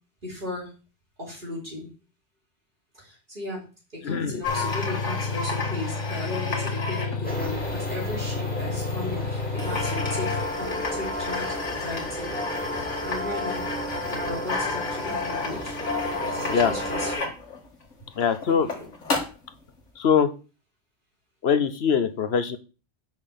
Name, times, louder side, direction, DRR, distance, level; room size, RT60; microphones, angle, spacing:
voice 1, 0.2-0.7 1.2-1.9 2.9-3.6 3.9-12.3 13.0-13.7 14.1-15.7 16.2-17.3 18.5-18.9, left 1 dB, 45° right, -6 dB, 4.0 m, -36 dB
voice 2, 4.0-4.4 16.5-16.7 18.2-18.7 20.0-20.3 21.4-22.6, left 7 dB, 60° left, 11 dB, 1.1 m, -22 dB
sound 1, 4.4-8.1 9.0-9.1 9.3-9.4 9.6-19.5, left 4 dB, 80° left, 2.1 m, -32 dB
sound 2, 4.5-10.5, left 4 dB, 40° left, 1.0 m, -31 dB
sound 3, 7.2-17.2, left 1 dB, 5° left, 2.5 m, -32 dB
6.3 x 5.6 x 6.8 m, 0.33 s
omnidirectional pair, 1.2 m